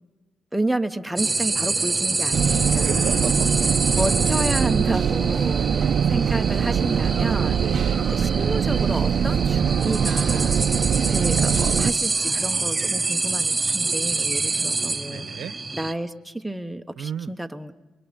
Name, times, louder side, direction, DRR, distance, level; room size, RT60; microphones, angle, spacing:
voice 1, 0.5-3.3 3.9-5.6 6.1-7.6 8.1-10.6 11.1-15.3 15.7-17.7, right 1 dB, 5° right, 6 dB, 1.2 m, -30 dB
sound 1, 1.2-15.9, right 3 dB, 20° right, 1.1 m, -26 dB
sound 2, 2.3-11.9, right 7 dB, 60° right, 0.7 m, -22 dB
voice 2, 2.8-3.5 5.6-6.2 7.6-8.0 10.7-11.2 15.1-15.5 17.0-17.3, right 9 dB, 75° right, 13 dB, 1.1 m, -34 dB
29.0 x 23.0 x 5.3 m, 1.3 s
cardioid pair, 90°, 0 cm